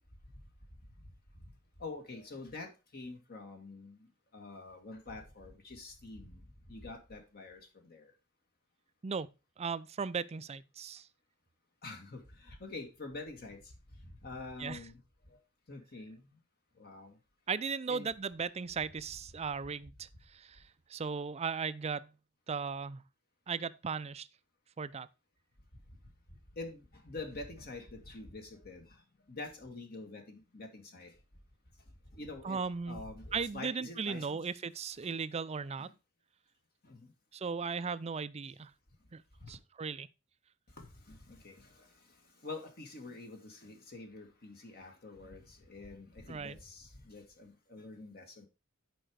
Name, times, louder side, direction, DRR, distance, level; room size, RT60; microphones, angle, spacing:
voice 1, 1.8-4.0 4.3-6.4 6.7-8.1 11.8-13.6 14.2-15.0 15.7-16.2 16.8-17.1 17.9-18.1 26.6-28.9 29.3-31.1 32.2-32.6 32.9-34.4 35.8-35.9 36.9-37.0 39.4-39.5 40.8-41.6 42.4-48.5, left 3 dB, 45° left, 1.8 m, -46 dB
voice 2, 9.6-11.1 14.6-14.8 17.5-20.6 20.9-22.1 22.5-23.0 23.5-24.3 24.8-25.1 32.4-33.0 33.3-35.9 37.3-38.7 39.1-39.2 39.5-40.1 46.3-46.6, right 5 dB, 30° right, 0.4 m, -37 dB
10.0 x 5.0 x 4.7 m
head